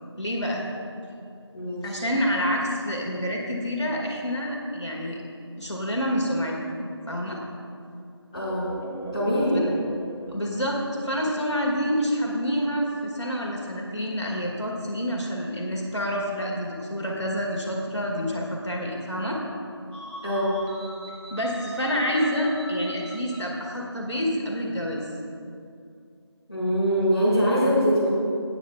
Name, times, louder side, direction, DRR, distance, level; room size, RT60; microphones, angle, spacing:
voice 1, 0.2-0.6 1.8-5.2 5.6-6.8 7.1-7.4 10.3-19.4 21.3-25.1, equal, 75° left, -2 dB, 2.0 m, -28 dB
voice 2, 1.5-2.0 8.3-8.7 9.1-9.7 20.2-20.6 26.5-28.1, equal, 15° left, -15 dB, 2.3 m, -23 dB
sound 1, 8.3-11.9, right 1 dB, 40° left, 0.7 m, -40 dB
sound 2, 19.9-23.6, equal, 70° right, 2.2 m, -42 dB
15.5 x 9.1 x 2.4 m, 2.5 s
figure-of-eight pair, 175°, 15 cm